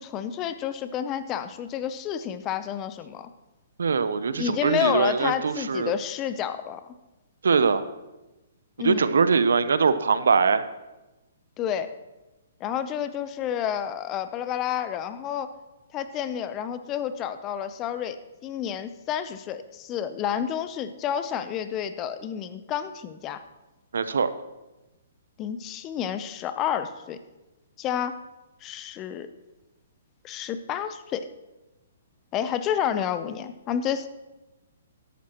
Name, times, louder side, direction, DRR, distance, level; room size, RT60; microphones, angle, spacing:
voice 1, 0.0-3.3 4.4-6.9 8.8-9.1 11.6-11.9 12.6-15.5 15.9-18.2 18.4-23.4 25.4-27.2 27.8-28.2 28.6-29.3 30.2-31.3 32.3-34.1, left 9 dB, 25° left, 12 dB, 0.6 m, -30 dB
voice 2, 3.8-5.9 7.4-7.8 8.8-10.7 23.9-24.3, right 5 dB, 85° right, 13 dB, 0.7 m, -22 dB
13.5 x 11.0 x 3.0 m, 1.1 s
hypercardioid pair, 145°, 0 cm